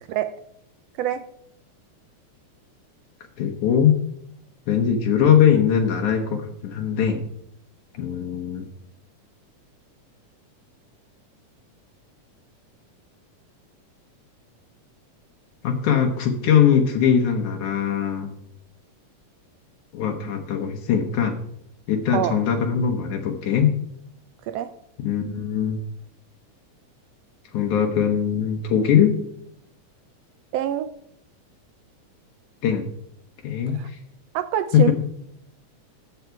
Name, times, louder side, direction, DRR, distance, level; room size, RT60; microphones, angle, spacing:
voice 1, 0.1-0.4 1.0-1.3 22.1-22.4 24.4-24.7 30.5-30.9 33.7-33.9 34.3-34.9, right 11 dB, 90° right, 12 dB, 1.4 m, -25 dB
voice 2, 3.4-4.0 4.7-7.3 7.9-8.7 15.6-18.3 19.9-21.3 21.9-23.7 25.0-25.8 27.5-29.2 32.6-32.9 33.4-34.0 34.7-34.9, left 8 dB, 75° left, 2 dB, 2.6 m, -21 dB
15.0 x 9.6 x 4.7 m, 0.74 s
omnidirectional pair, 3.6 m